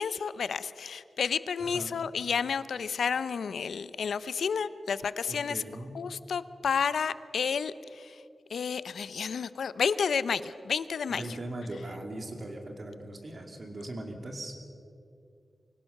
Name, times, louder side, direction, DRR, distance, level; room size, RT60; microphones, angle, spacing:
voice 1, 0.0-5.6 5.9-8.2 8.5-11.2, left 6 dB, 85° left, 15 dB, 0.6 m, -31 dB
voice 2, 1.6-1.9 5.3-6.0 11.1-14.5, right 1 dB, 35° right, 3 dB, 2.5 m, -39 dB
24.0 x 17.0 x 6.6 m, 2.5 s
wide cardioid pair, 160°, 0 cm